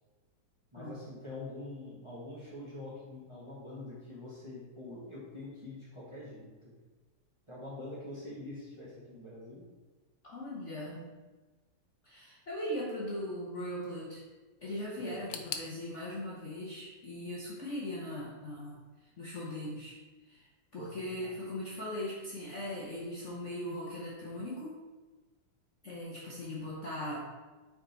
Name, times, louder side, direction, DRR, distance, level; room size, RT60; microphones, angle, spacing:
voice 1, 0.7-6.7 7.5-9.6 15.0-15.4 20.8-21.3, left 2 dB, 15° right, -8 dB, 1.6 m, -45 dB
voice 2, 10.2-11.1 12.0-14.2 14.6-20.0 20.3-20.5 20.7-24.7 25.8-27.2, left 1 dB, 40° left, -6 dB, 1.2 m, -39 dB
sound 1, 15.3-18.2 18.4-19.2 19.5-19.6 20.5-20.6, left 8 dB, 75° left, 1.3 m, -46 dB
6.3 x 4.3 x 4.4 m, 1.3 s
omnidirectional pair, 2.2 m